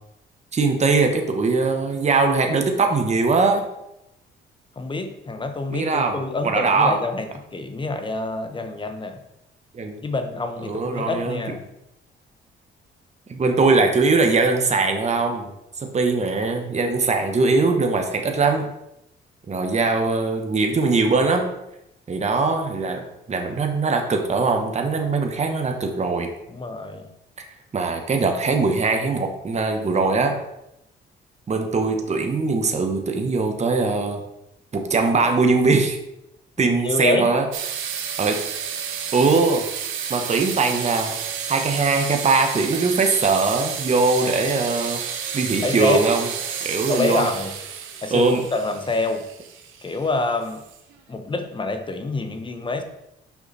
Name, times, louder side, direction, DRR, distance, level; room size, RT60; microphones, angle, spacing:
voice 1, 0.5-3.6 5.7-7.0 9.7-10.0 10.6-11.4 13.3-15.5 15.8-18.7 19.5-21.5 22.1-26.3 27.4-27.5 27.7-30.4 31.5-34.2 34.7-36.0 36.6-37.5 38.2-38.4 39.1-39.6 40.1-41.1 41.5-45.0 45.3-46.3 46.6-47.3 48.1-48.4, right 3 dB, 35° right, 4 dB, 1.2 m, -21 dB
voice 2, 4.8-9.2 10.0-11.6 26.5-27.1 36.6-37.3 45.6-46.0 46.9-47.5 48.0-49.2 49.8-50.6 51.1-52.8, left 2 dB, 25° left, 7 dB, 1.0 m, -26 dB
sound 1, 37.5-50.9, right 7 dB, 85° right, 0.9 m, -31 dB
6.0 x 5.6 x 4.1 m, 0.85 s
cardioid pair, 90°, 20 cm